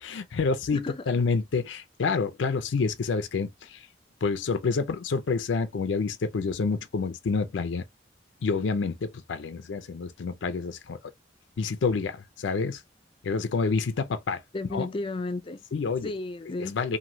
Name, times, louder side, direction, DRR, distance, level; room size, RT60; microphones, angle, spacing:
voice 1, 0.0-3.8 4.2-7.8 8.4-11.0 11.6-12.8 13.2-14.4 14.7-14.9 15.7-16.1 16.6-17.0, left 4 dB, 90° left, 0.4 m, -28 dB
voice 2, 14.5-15.6 16.0-16.8, left 2 dB, 30° left, 0.4 m, -33 dB
3.0 x 2.6 x 2.6 m
head